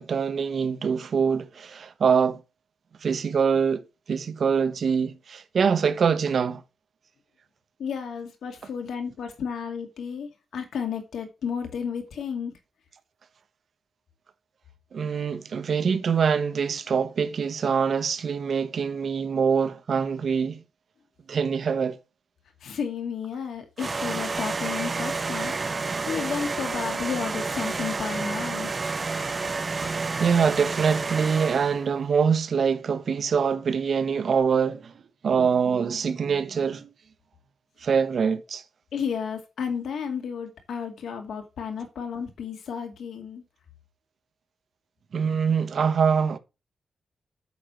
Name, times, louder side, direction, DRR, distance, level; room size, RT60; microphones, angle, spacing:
voice 1, 0.0-2.4 3.0-3.8 4.1-6.6 14.9-20.6 21.3-22.0 30.2-34.9 35.2-36.9 37.8-38.6 45.1-46.4, right 6 dB, 60° right, 1.1 m, -24 dB
voice 2, 7.8-12.5 22.6-28.7 38.9-43.4, left 7 dB, 85° left, 2.3 m, -32 dB
sound 1, 23.8-31.9, right 4 dB, 30° right, 0.6 m, -30 dB
8.5 x 6.5 x 4.4 m
cardioid pair, 110°, 0 cm